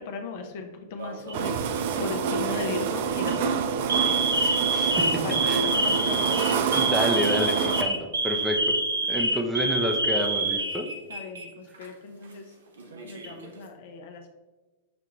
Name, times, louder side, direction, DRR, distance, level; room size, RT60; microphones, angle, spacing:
voice 1, 0.0-4.2 5.2-6.8 11.1-12.5 13.0-14.3, left 4 dB, 60° left, 5 dB, 0.6 m, -37 dB
Alarm, 1.0-1.5 2.4-2.7 3.1-3.3 3.9-11.4 11.7-11.9 12.8-13.5, right 2 dB, 80° right, 0.7 m, -27 dB
sound 1, 1.3-7.8, right 6 dB, 60° right, 0.3 m, -27 dB
voice 2, 4.7-5.6 6.7-8.0 8.2-8.8 9.1-10.9, equal, 10° right, 3 dB, 0.5 m, -28 dB
6.0 x 2.4 x 2.9 m, 1.2 s
hypercardioid pair, 100°, 0 cm